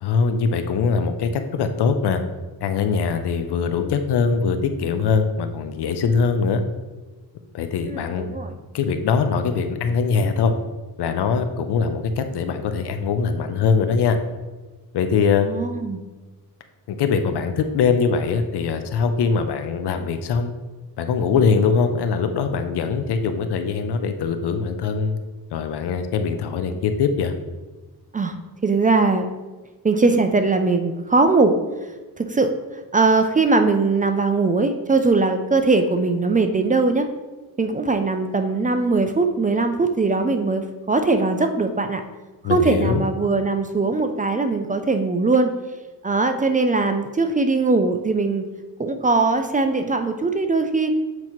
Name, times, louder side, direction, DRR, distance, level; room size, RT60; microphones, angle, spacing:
voice 1, 0.0-2.2 2.6-6.6 7.5-10.5 11.0-14.2 14.9-15.5 16.9-20.5 21.0-25.2 25.5-27.3 42.4-43.0, left 5 dB, 80° left, 8 dB, 0.7 m, -22 dB
voice 2, 7.9-8.5 15.4-16.0 28.1-28.3 28.6-29.3 29.8-31.6 32.2-32.5 32.9-37.1 37.6-42.0 42.4-45.5 46.0-48.5 48.8-50.9, right 3 dB, 20° right, 7 dB, 0.4 m, -20 dB
7.8 x 2.9 x 4.4 m, 1.2 s
cardioid pair, 100°, 39 cm